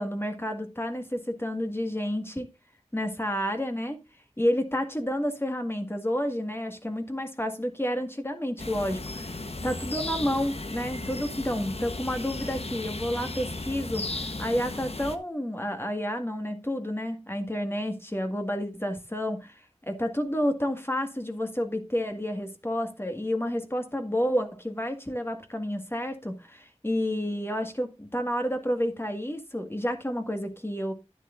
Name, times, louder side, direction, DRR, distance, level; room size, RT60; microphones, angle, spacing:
voice 1, 0.0-2.5 2.9-4.0 4.4-9.3 9.6-19.5 19.8-30.9, equal, 20° left, 1.9 m, -30 dB
sound 1, 8.6-15.2, left 2 dB, 60° left, 1.1 m, -35 dB
11.0 x 10.5 x 2.6 m
wide cardioid pair, 50°, 12 cm